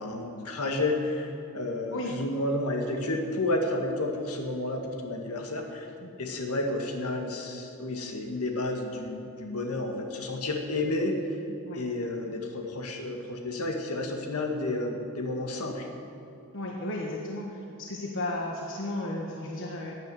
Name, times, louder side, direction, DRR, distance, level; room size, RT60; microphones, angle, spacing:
voice 1, 0.0-5.9 6.2-11.1 11.7-15.9, left 2 dB, 80° left, 3 dB, 1.8 m, -31 dB
voice 2, 16.5-19.9, left 1 dB, 60° left, 0 dB, 1.4 m, -34 dB
12.5 x 9.2 x 9.2 m, 2.7 s
head